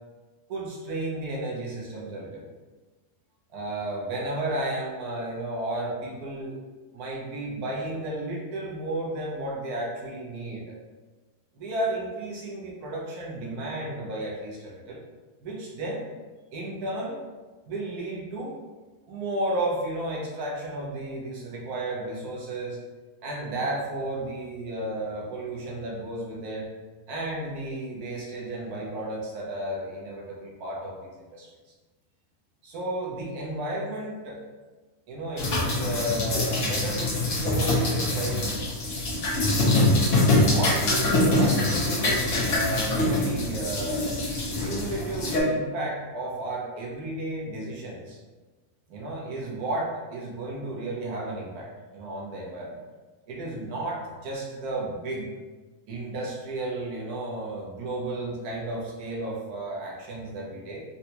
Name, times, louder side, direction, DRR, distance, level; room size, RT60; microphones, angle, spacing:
voice 1, 0.5-2.4 3.5-6.6 6.9-10.8 11.5-15.0 15.4-16.1 16.5-17.2 17.6-18.6 19.1-22.8 23.2-26.7 27.1-31.5 32.6-34.4 35.1-38.4 40.4-44.2 44.6-48.2 48.9-52.8 53.3-55.3 55.9-60.8, right 1 dB, 80° right, -4 dB, 1.3 m, -33 dB
sound 1, 35.4-45.4, left 2 dB, 60° left, 1.2 m, -24 dB
4.0 x 2.2 x 2.8 m, 1.3 s
omnidirectional pair, 1.6 m